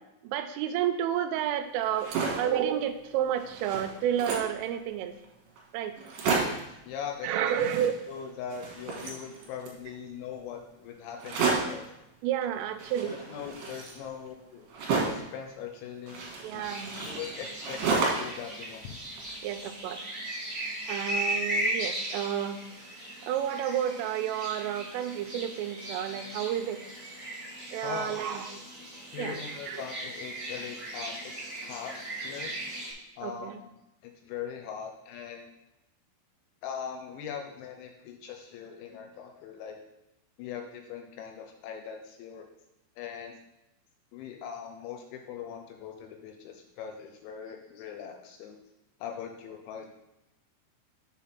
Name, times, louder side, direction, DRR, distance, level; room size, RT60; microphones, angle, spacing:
voice 1, 0.2-5.1 5.7-5.9 7.2-7.9 12.2-13.2 16.4-16.9 19.4-20.0 20.9-22.6 23.2-26.8 27.7-28.5 29.2-29.4 29.7-29.8 33.2-33.6, right 10 dB, 85° right, 9 dB, 3.1 m, -30 dB
sound 1, 1.8-2.6 3.0-3.1 3.4-4.6 5.2-5.3 5.6-5.7 6.0-6.7 7.5-8.2 8.5-9.8 11.2-11.9 12.8-15.3 16.1-18.4 18.7-19.7, right 4 dB, 65° right, 3.0 m, -32 dB
voice 2, 6.9-7.4 8.1-11.9 13.1-14.7 15.0-16.7 17.1-19.1 27.8-28.2 29.1-32.5 33.2-33.7 34.0-35.5 36.6-39.8 40.4-42.5 43.0-43.3 44.1-48.6 49.0-49.9, left 7 dB, 80° left, 3 dB, 2.8 m, -41 dB
sound 2, 16.6-32.9, right 1 dB, 30° right, 1.1 m, -37 dB
7.5 x 4.1 x 5.8 m, 0.90 s
omnidirectional pair, 5.7 m